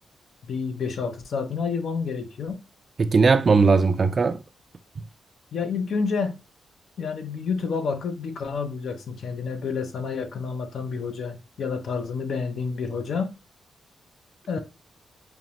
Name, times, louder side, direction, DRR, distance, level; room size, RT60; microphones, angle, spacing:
voice 1, 0.4-2.6 5.5-6.4 7.0-13.3 14.5-14.6, left 5 dB, 70° left, 0.7 m, -29 dB
voice 2, 3.0-4.4, right 4 dB, 45° right, 0.3 m, -18 dB
5.2 x 2.1 x 2.9 m
cardioid pair, 80°, 0 cm